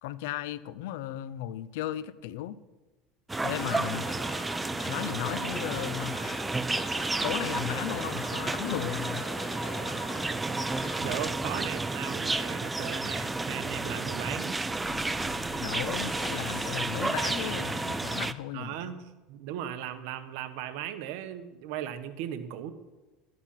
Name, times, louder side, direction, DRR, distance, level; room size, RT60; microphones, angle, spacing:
voice 1, 0.0-2.6 3.4-4.1 4.9-6.2 7.2-9.2 15.6-19.0, left 13 dB, 80° left, 17 dB, 0.6 m, -35 dB
sound 1, 3.3-18.3, right 3 dB, 10° right, 0.5 m, -32 dB
sound 2, 3.6-11.3, left 5 dB, 65° left, 2.9 m, -43 dB
voice 2, 11.0-14.6 18.5-19.0 19.3-22.7, right 10 dB, 70° right, 11 dB, 1.2 m, -37 dB
sound 3, 14.4-18.2, left 4 dB, 40° left, 4.2 m, -45 dB
13.0 x 9.3 x 5.8 m, 1.2 s
supercardioid pair, 125°, 0 cm